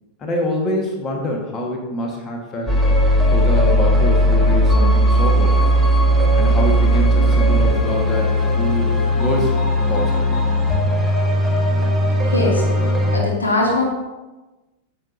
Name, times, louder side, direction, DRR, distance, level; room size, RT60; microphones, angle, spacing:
voice 1, 0.2-2.8 3.3-5.7 6.3-8.9 9.2-9.5 9.9-10.4, left 1 dB, 30° left, 0 dB, 1.5 m, -25 dB
sound 1, 2.7-13.2, equal, ahead, 1.5 m, -17 dB
voice 2, 12.2-12.6 13.1-13.8, left 2 dB, 75° left, -1 dB, 1.5 m, -20 dB
9.5 x 6.9 x 2.7 m, 1.1 s
figure-of-eight pair, 90°, 0 cm